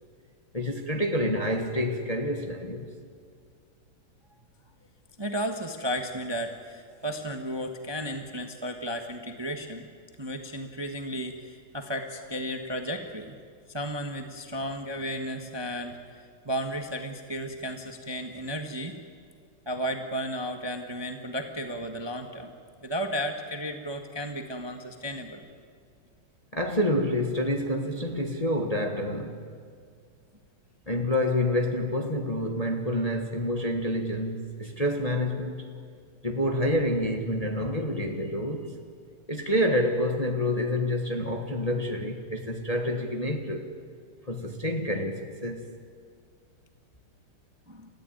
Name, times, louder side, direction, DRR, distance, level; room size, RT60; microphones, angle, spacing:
voice 1, 0.5-2.9 26.5-29.5 30.9-35.7 36.2-38.8 39.3-43.7 44.3-45.6, left 1 dB, 20° left, 1.2 m, -28 dB
voice 2, 5.2-9.9 10.2-13.4 13.7-16.0 16.4-19.0 19.6-22.5 22.8-25.4 47.7-47.9, equal, 15° right, 1.1 m, -34 dB
29.0 x 14.5 x 9.1 m
omnidirectional pair, 2.4 m